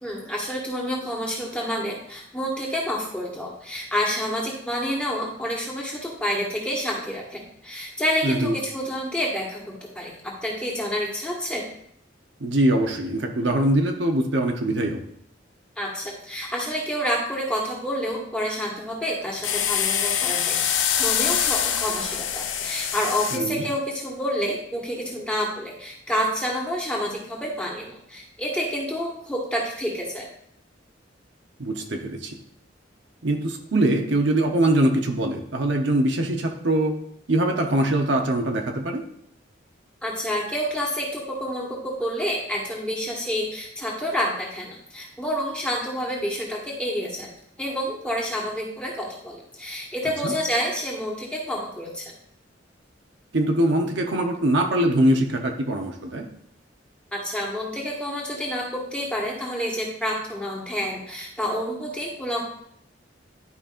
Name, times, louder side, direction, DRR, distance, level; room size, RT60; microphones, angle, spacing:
voice 1, 0.0-10.1 10.4-11.6 15.8-30.2 40.0-47.3 47.6-52.1 57.1-62.4, equal, 5° left, -3 dB, 1.6 m, -28 dB
voice 2, 8.2-8.6 12.4-15.0 23.3-23.7 31.6-32.4 33.2-36.9 37.3-39.0 50.2-50.3 53.3-56.3, right 1 dB, 70° right, 2 dB, 0.9 m, -22 dB
sound 1, 19.4-23.4, left 9 dB, 80° left, 0.6 m, -24 dB
11.0 x 5.2 x 2.6 m, 0.70 s
head